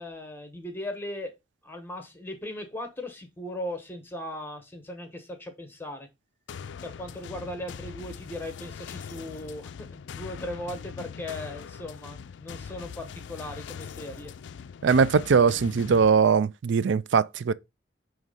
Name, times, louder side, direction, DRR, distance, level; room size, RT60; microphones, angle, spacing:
voice 1, 0.0-1.3 1.6-6.1 6.8-14.3, left 1 dB, 10° left, 1.0 m, -38 dB
sound 1, 6.5-16.1, left 7 dB, 75° left, 0.4 m, -41 dB
voice 2, 14.8-17.5, right 5 dB, 80° right, 0.4 m, -21 dB
6.1 x 3.2 x 5.3 m
head